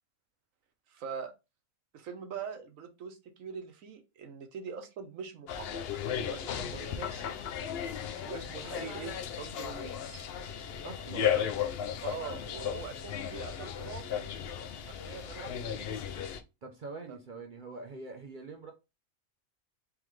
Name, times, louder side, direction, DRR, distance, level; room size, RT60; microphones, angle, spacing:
voice 1, 0.9-1.3 1.9-5.7 6.2-7.4 8.2-10.2 11.2-11.5 12.0-14.2 14.9-15.9 17.1-17.2, right 6 dB, 70° right, 1.1 m, -43 dB
sound 1, 5.5-16.4, left 9 dB, 65° left, 0.6 m, -35 dB
Wind instrument woodwind instrument, 9.2-14.6, left 5 dB, 15° left, 0.5 m, -54 dB
voice 2, 10.8-11.3 16.6-18.7, right 3 dB, 50° right, 0.6 m, -44 dB
3.7 x 3.3 x 3.1 m
omnidirectional pair, 1.5 m